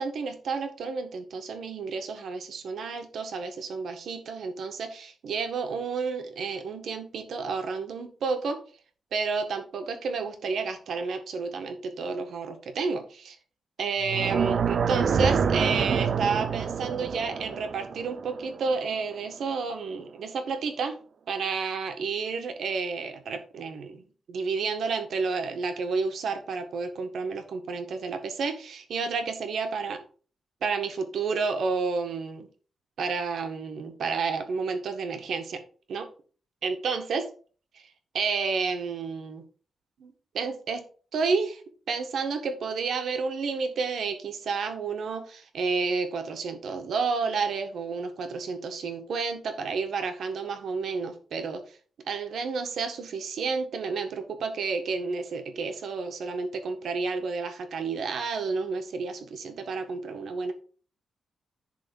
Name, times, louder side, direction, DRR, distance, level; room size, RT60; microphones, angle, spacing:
voice 1, 0.0-8.6 9.1-13.3 13.8-21.0 21.3-30.0 30.6-32.5 33.0-35.6 35.9-36.1 36.6-37.2 37.7-37.8 38.1-39.4 40.0-40.8 41.1-41.6 41.9-51.6 52.1-60.5, right 4 dB, 70° right, 6 dB, 1.6 m, -30 dB
sound 1, 14.0-19.1, right 6 dB, 50° right, 0.5 m, -27 dB
11.0 x 3.8 x 5.4 m, 0.40 s
wide cardioid pair, 155°, 0 cm